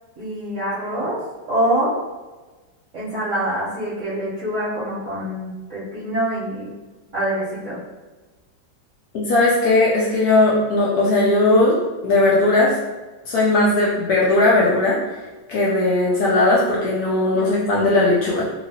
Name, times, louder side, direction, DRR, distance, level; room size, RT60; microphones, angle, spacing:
voice 1, 0.2-1.2 1.5-1.9 2.9-6.7 7.1-7.8 17.3-17.6, right 1 dB, 50° right, -11 dB, 1.0 m, -25 dB
voice 2, 9.1-11.8 12.0-12.7 13.3-15.0 15.5-18.5, left 2 dB, 75° left, -5 dB, 0.9 m, -17 dB
2.9 x 2.8 x 2.7 m, 1.2 s
omnidirectional pair, 2.1 m